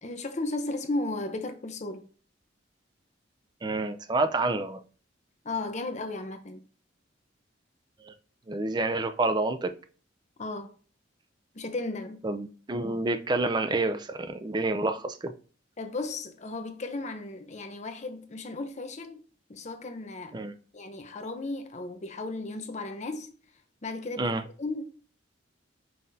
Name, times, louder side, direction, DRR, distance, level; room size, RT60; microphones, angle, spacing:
voice 1, 0.0-2.0 5.4-6.6 10.4-10.7 11.5-12.2 15.8-19.2 19.5-20.4 20.7-23.3 23.8-24.8, left 2 dB, 40° left, 0.7 m, -35 dB
voice 2, 3.6-4.8 8.0-8.1 8.5-9.7 12.2-15.3 20.3-20.5 24.2-24.4, right 2 dB, 20° right, 0.4 m, -28 dB
5.5 x 3.6 x 2.7 m
head